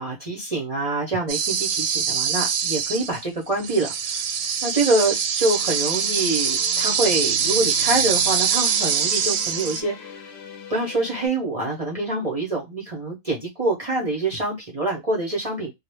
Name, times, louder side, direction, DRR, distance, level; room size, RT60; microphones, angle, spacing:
voice 1, 0.0-3.9 4.6-10.0 10.7-15.7, right 2 dB, 40° right, 0.5 m, -25 dB
sound 1, 1.3-3.2 3.5-9.8, right 7 dB, 80° right, 1.1 m, -23 dB
sound 2, 5.4-11.3, left 5 dB, 60° left, 0.7 m, -41 dB
2.4 x 2.1 x 3.2 m
omnidirectional pair, 1.5 m